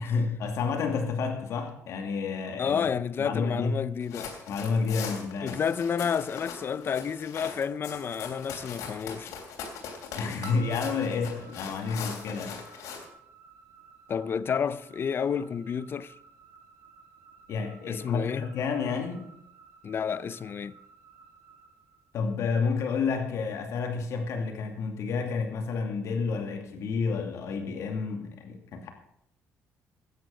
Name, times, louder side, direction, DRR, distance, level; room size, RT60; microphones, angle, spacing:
voice 1, 0.0-2.8 3.2-3.8 4.5-5.6 10.1-12.6 17.5-19.3 22.1-28.9, left 5 dB, 70° left, 2.5 m, -30 dB
voice 2, 2.6-4.3 5.4-9.3 14.1-16.1 17.9-18.5 19.8-20.7, left 7 dB, 45° left, 0.6 m, -30 dB
sound 1, 4.0-13.1, left 6 dB, 85° left, 3.2 m, -40 dB
sound 2, 10.4-22.7, right 4 dB, 85° right, 2.8 m, -54 dB
12.5 x 9.5 x 6.5 m
cardioid pair, 90°, 5 cm